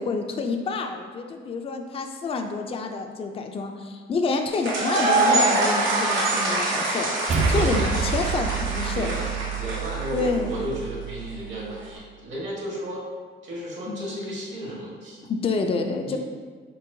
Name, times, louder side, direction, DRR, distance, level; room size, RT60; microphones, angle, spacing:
voice 1, 0.0-9.2 10.1-10.6 13.9-14.2 15.2-16.2, left 4 dB, 30° left, 4 dB, 0.4 m, -28 dB
sound 1, 4.5-10.5, right 2 dB, 90° right, 0.9 m, -25 dB
sound 2, 7.3-11.8, right 6 dB, 35° right, 0.4 m, -29 dB
voice 2, 7.5-7.8 8.9-13.0 13.4-15.3 16.0-16.2, equal, 70° right, -4 dB, 1.4 m, -34 dB
4.5 x 3.3 x 2.6 m, 1.5 s
cardioid pair, 90°, 20 cm